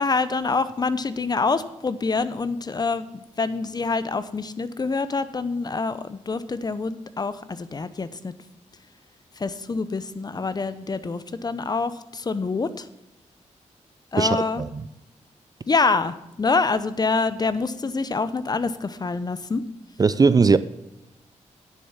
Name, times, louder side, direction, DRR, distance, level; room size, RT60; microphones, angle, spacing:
voice 1, 0.0-3.1 3.4-8.3 9.4-12.9 14.1-14.6 15.7-19.6, left 4 dB, 35° left, 0.7 m, -26 dB
voice 2, 14.2-14.7 20.0-20.6, right 4 dB, 30° right, 0.4 m, -18 dB
10.0 x 7.0 x 5.7 m
cardioid pair, 85°, 12 cm